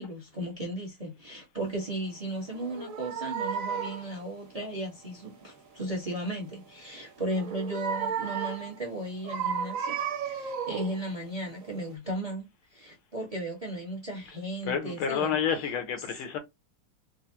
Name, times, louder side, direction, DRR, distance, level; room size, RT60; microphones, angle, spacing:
voice 1, 0.0-10.0 10.2-15.4, right 1 dB, 25° right, 0.9 m, -35 dB
sound 1, 2.5-4.1 7.3-8.8 9.2-11.1 11.6-11.7, right 7 dB, 80° right, 0.7 m, -33 dB
voice 2, 14.7-16.4, left 7 dB, 80° left, 1.8 m, -29 dB
4.7 x 2.2 x 2.7 m
omnidirectional pair, 2.4 m